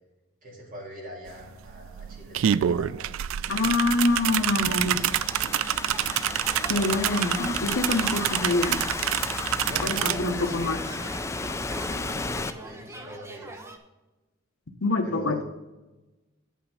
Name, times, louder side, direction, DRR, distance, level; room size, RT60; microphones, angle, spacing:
voice 1, 0.4-2.9 3.5-3.9 4.3-5.8 9.7-11.3 11.6-13.6 15.0-15.4, equal, 40° right, -2 dB, 3.0 m, -42 dB
sound 1, 1.3-1.4 1.7-10.2, right 10 dB, 70° right, 0.3 m, -27 dB
voice 2, 3.5-5.0 6.7-8.9 9.8-10.8 14.8-15.4, left 2 dB, 75° left, 4 dB, 0.9 m, -25 dB
Thunderstorm / Rain, 3.5-12.5, left 3 dB, 15° left, 0.3 m, -34 dB
sound 2, 5.3-13.8, right 2 dB, 15° right, 0.8 m, -42 dB
8.3 x 5.8 x 6.3 m, 1.1 s
head